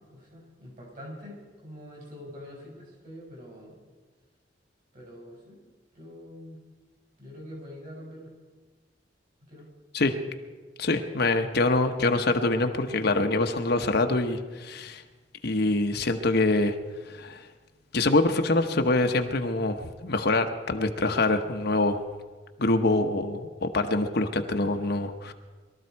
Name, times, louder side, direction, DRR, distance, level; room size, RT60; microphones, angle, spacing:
voice 1, 0.0-3.8 4.9-5.6 5.9-6.6 7.2-8.3 9.5-9.7, equal, 45° right, -2 dB, 5.9 m, -45 dB
voice 2, 10.8-15.0 15.4-16.7 17.1-17.4 17.9-22.0 22.6-25.3, left 2 dB, 60° left, 6 dB, 1.0 m, -25 dB
21.5 x 13.5 x 4.6 m, 1.4 s
head